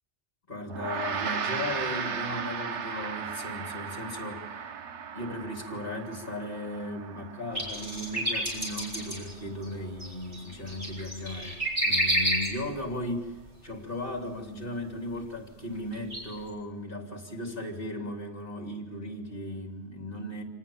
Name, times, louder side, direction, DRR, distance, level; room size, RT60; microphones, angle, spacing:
voice 1, 0.5-4.5 5.1-13.4 13.6-20.4, left 1 dB, 55° left, 3 dB, 3.3 m, -36 dB
Gong, 0.7-10.2, right 6 dB, 90° right, 1.3 m, -37 dB
sound 1, 7.5-12.9 13.6-13.7 15.1-15.2 15.8-16.2 16.5-16.6, equal, 30° right, 6.6 m, -29 dB
26.5 x 18.5 x 7.2 m, 1.2 s
omnidirectional pair, 1.1 m